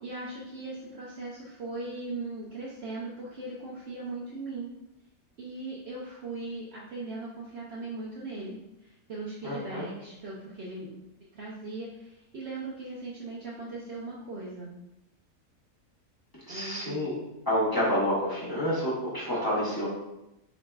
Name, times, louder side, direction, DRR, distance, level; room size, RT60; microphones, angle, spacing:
voice 1, 0.0-4.7 5.4-10.9 11.3-14.7 16.5-17.0, right 2 dB, 60° right, -5 dB, 0.8 m, -39 dB
voice 2, 9.4-9.9 16.4-17.1 17.5-19.9, equal, 15° left, -9 dB, 1.0 m, -28 dB
3.8 x 3.7 x 2.3 m, 0.89 s
omnidirectional pair, 1.5 m